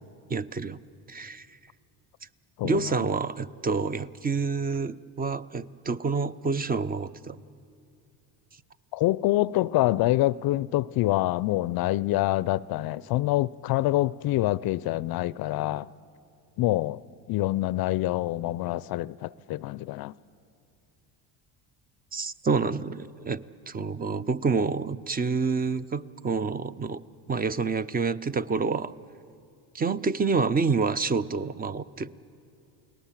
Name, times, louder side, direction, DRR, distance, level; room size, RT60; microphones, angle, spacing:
voice 1, 0.3-0.8 1.1-1.5 2.6-7.4 22.1-27.0 27.3-28.9 29.7-32.1, right 4 dB, 20° right, 0.6 m, -28 dB
voice 2, 8.9-15.9 16.6-17.0 17.3-20.1, left 16 dB, 50° left, 0.5 m, -26 dB
28.5 x 19.0 x 7.4 m
supercardioid pair, 80°, 47 cm